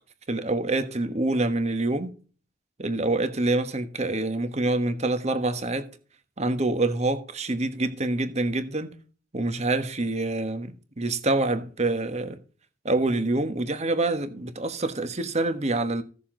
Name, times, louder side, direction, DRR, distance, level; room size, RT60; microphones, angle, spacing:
voice 1, 0.3-2.1 2.8-5.9 6.4-8.9 9.3-12.4 12.8-16.0, right 2 dB, 35° right, 1.3 m, -26 dB
15.5 x 6.9 x 3.8 m
head